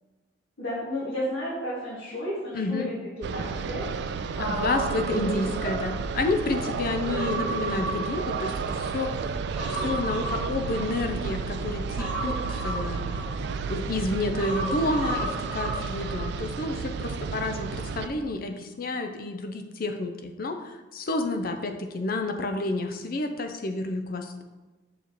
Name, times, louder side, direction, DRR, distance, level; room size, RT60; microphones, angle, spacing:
voice 1, 0.6-2.9 3.3-5.7 7.2-7.3, equal, 85° left, -9 dB, 1.8 m, -33 dB
voice 2, 2.5-2.9 4.4-9.1 9.7-12.4 12.6-13.1 13.6-24.4, left 2 dB, 50° left, 6 dB, 0.5 m, -30 dB
sound 1, 3.2-18.1, right 5 dB, 60° right, 0.3 m, -32 dB
Human voice, 7.1-8.9 9.3-11.3 12.0-13.7 14.4-16.3 16.6-16.7, right 2 dB, 5° right, 1.3 m, -34 dB
6.8 x 4.7 x 3.0 m, 1.2 s
head